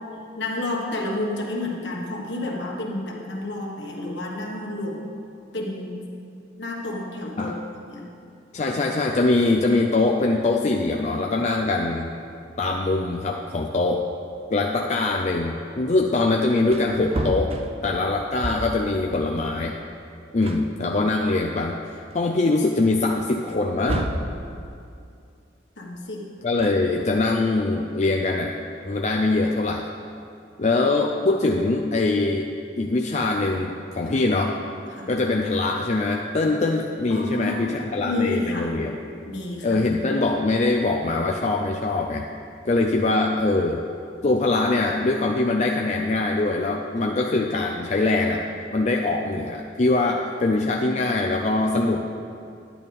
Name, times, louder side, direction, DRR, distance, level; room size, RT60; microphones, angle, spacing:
voice 1, 0.4-5.0 5.5-6.0 6.6-7.5 7.9-8.0 25.8-26.3 34.9-35.1 37.1-37.7 38.0-38.7 39.3-39.7, left 2 dB, 65° left, -1 dB, 1.5 m, -30 dB
voice 2, 8.5-12.1 12.6-14.0 14.5-17.5 17.8-19.8 20.3-24.1 26.4-28.6 28.8-29.9 30.6-32.5 32.8-34.6 35.1-39.0 39.6-42.3 42.7-43.8 44.2-48.5 48.7-52.1, left 2 dB, 40° left, 1 dB, 0.4 m, -23 dB
Wood, 16.7-18.9 20.0-20.1 20.4-21.6 22.1-22.2 23.4-24.4 26.4-27.3, right 1 dB, 30° right, 0.5 m, -31 dB
11.0 x 10.5 x 3.5 m, 2.5 s
head